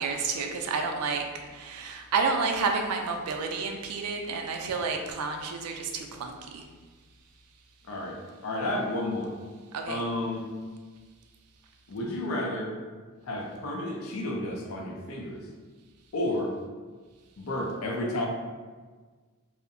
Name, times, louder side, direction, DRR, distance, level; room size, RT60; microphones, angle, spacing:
voice 1, 0.0-6.6 9.7-10.0, right 4 dB, 90° right, 4 dB, 0.4 m, -30 dB
voice 2, 7.9-9.3 9.9-10.5 11.9-12.7 13.2-15.4 16.1-16.5 17.4-18.3, left 1 dB, 70° left, 0 dB, 0.5 m, -31 dB
2.6 x 2.0 x 2.5 m, 1.4 s
head